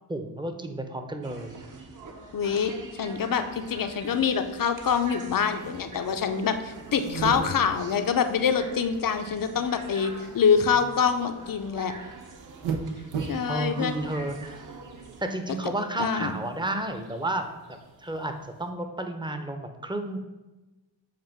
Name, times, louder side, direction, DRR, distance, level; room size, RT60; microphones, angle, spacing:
voice 1, 0.1-1.6 13.5-14.4 15.2-20.2, right 1 dB, 10° right, 6 dB, 0.8 m, -32 dB
sound 1, 1.2-15.2, right 3 dB, 40° right, 1.1 m, -44 dB
voice 2, 2.3-2.7 3.0-11.9 13.3-13.9 16.0-16.3, left 6 dB, 45° left, 8 dB, 0.7 m, -25 dB
sound 2, 3.3-18.7, right 5 dB, 75° right, 0.9 m, -41 dB
7.5 x 2.5 x 5.8 m, 1.1 s
cardioid pair, 60°, 47 cm